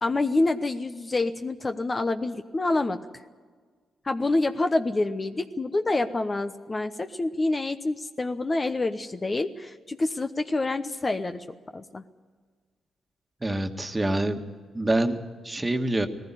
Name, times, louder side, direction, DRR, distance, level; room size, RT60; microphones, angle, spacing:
voice 1, 0.0-3.0 4.0-11.4 11.7-12.0, left 2 dB, 30° left, 8 dB, 0.9 m, -27 dB
voice 2, 13.4-14.4 14.7-16.1, right 1 dB, 20° right, 6 dB, 1.7 m, -26 dB
18.5 x 15.0 x 9.9 m, 1.5 s
cardioid pair, 70°, 0 cm